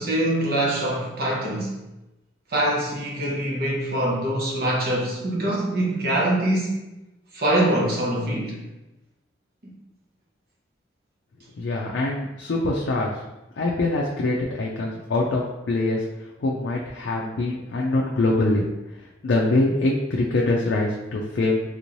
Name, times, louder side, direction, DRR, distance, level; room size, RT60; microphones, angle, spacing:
voice 1, 0.0-1.8 2.5-6.8 7.3-8.6 9.6-9.7, right 1 dB, 55° right, -3 dB, 0.9 m, -24 dB
voice 2, 11.6-13.1 13.6-16.0 16.4-18.7 19.2-21.6, left 2 dB, 70° left, -2 dB, 0.4 m, -24 dB
3.4 x 3.1 x 2.6 m, 0.99 s
head